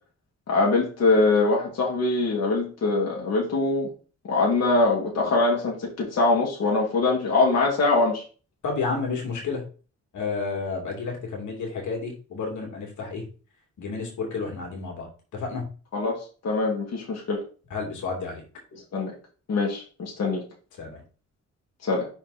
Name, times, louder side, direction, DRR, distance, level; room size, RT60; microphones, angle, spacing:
voice 1, 0.5-3.9 4.3-8.2 15.9-17.4 18.9-19.1 19.5-20.4 21.8-22.1, left 3 dB, 60° left, -2 dB, 2.2 m, -23 dB
voice 2, 8.6-9.7 10.1-13.3 13.8-15.7 17.7-18.4 20.8-21.0, left 4 dB, 85° left, 0 dB, 2.7 m, -31 dB
6.1 x 4.5 x 4.1 m, 0.37 s
cardioid pair, 120°, 29 cm